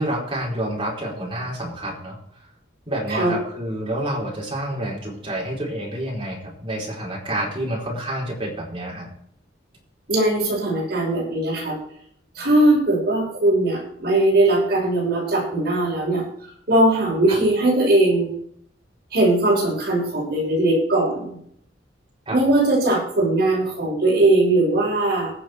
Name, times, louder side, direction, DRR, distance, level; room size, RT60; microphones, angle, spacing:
voice 1, 0.0-2.2 2.9-9.1 17.3-17.4 22.3-22.4, right 1 dB, 25° right, -3 dB, 4.4 m, -28 dB
voice 2, 10.1-11.8 12.4-16.2 16.7-18.3 19.1-21.4 22.3-25.3, right 2 dB, 55° right, -3 dB, 6.1 m, -19 dB
19.5 x 6.8 x 4.5 m, 0.67 s
head